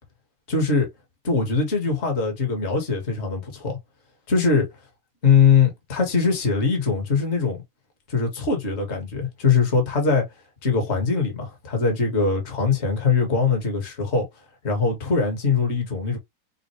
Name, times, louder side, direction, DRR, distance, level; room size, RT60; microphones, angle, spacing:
voice 1, 0.5-0.9 1.2-3.8 4.3-4.7 5.2-7.6 8.1-10.3 10.6-14.2 14.6-16.2, left 5 dB, 35° left, 1.6 m, -22 dB
5.5 x 2.5 x 3.1 m
omnidirectional pair, 2.4 m